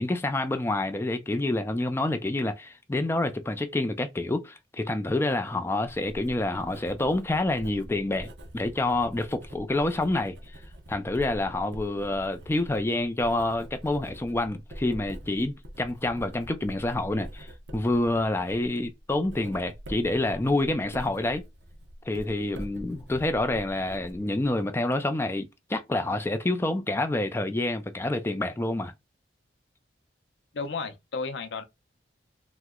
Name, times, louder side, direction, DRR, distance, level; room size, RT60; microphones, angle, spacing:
voice 1, 0.0-8.3 8.5-10.6 10.9-21.4 22.1-28.9, left 2 dB, 15° left, 0.4 m, -28 dB
Writing, 5.8-24.6, equal, 70° right, 0.7 m, -44 dB
voice 2, 30.5-31.6, left 4 dB, 80° left, 0.6 m, -33 dB
2.9 x 2.1 x 3.6 m
head